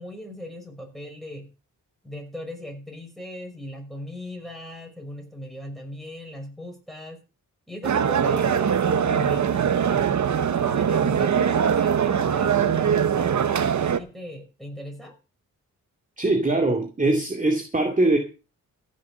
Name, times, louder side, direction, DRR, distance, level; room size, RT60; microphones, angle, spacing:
voice 1, 0.0-1.5 2.0-7.2 7.7-10.2 10.7-13.6 13.8-15.1, left 1 dB, ahead, 2 dB, 5.8 m, -38 dB
sound 1, 7.8-14.0, right 8 dB, 60° right, 1.1 m, -22 dB
voice 2, 16.2-18.2, right 2 dB, 25° right, 3 dB, 2.4 m, -22 dB
15.0 x 6.6 x 6.7 m, 0.33 s
cardioid pair, 85°, 33 cm